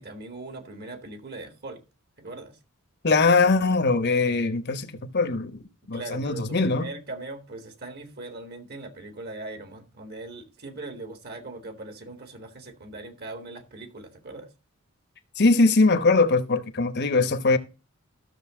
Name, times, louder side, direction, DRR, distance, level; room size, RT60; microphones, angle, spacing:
voice 1, 0.0-1.8 2.2-2.6 5.9-14.5, right 2 dB, 45° right, 1.9 m, -40 dB
voice 2, 3.0-5.6 5.9-6.9 15.4-17.6, left 3 dB, 50° left, 1.0 m, -21 dB
13.5 x 6.7 x 3.7 m
head